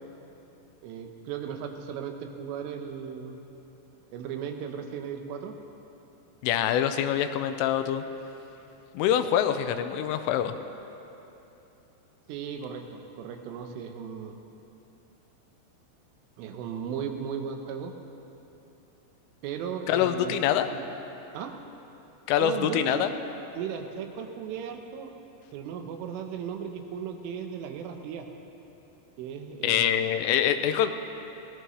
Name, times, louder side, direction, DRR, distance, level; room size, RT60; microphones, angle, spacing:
voice 1, 0.8-3.4 4.1-5.5 12.3-14.4 16.4-17.9 19.4-20.4 20.7-20.8 21.3-21.5 22.4-23.1 23.5-25.1 25.5-28.3 29.2-30.1, right 7 dB, 80° right, 4 dB, 3.4 m, -36 dB
voice 2, 6.4-8.0 8.9-10.5 19.9-20.7 22.3-23.1 29.6-30.9, left 10 dB, 90° left, 8 dB, 3.2 m, -25 dB
22.5 x 18.0 x 3.2 m, 3.0 s
omnidirectional pair, 5.7 m